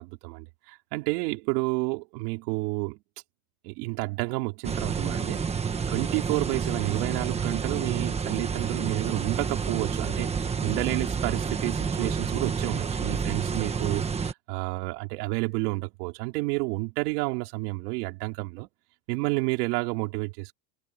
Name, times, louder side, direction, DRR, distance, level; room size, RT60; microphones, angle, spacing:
voice 1, 0.0-3.0 3.6-5.5 5.9-10.3 10.6-18.7 19.1-20.5, right 26 dB, 75° right, 4.2 m, -30 dB
sound 1, 4.6-14.3, right 6 dB, 15° right, 1.3 m, -29 dB
cardioid pair, 170°, 47 cm